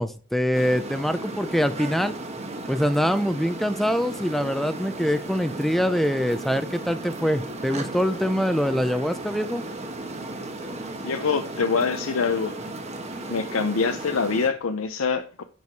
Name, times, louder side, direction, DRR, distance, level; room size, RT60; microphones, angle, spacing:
voice 1, 0.0-2.2 2.7-9.6, equal, ahead, 10 dB, 0.5 m, -24 dB
sound 1, 0.5-14.5, right 2 dB, 30° right, 1.3 m, -35 dB
voice 2, 11.0-12.6 13.3-15.4, left 5 dB, 85° left, 7 dB, 0.6 m, -25 dB
11.0 x 4.7 x 4.7 m, 0.39 s
head